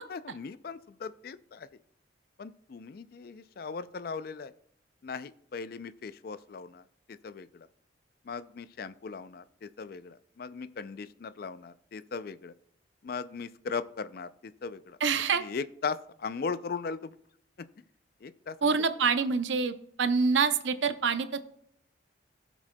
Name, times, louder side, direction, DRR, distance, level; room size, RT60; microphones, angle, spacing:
voice 1, 0.1-1.7 2.4-4.5 5.0-7.7 8.2-12.5 13.0-15.0 15.4-17.2 17.6-17.7 18.2-18.8, left 5 dB, 50° left, 15 dB, 0.3 m, -38 dB
voice 2, 15.0-15.4 18.6-21.4, right 5 dB, 75° right, 11 dB, 0.6 m, -26 dB
17.5 x 6.1 x 2.2 m, 0.69 s
head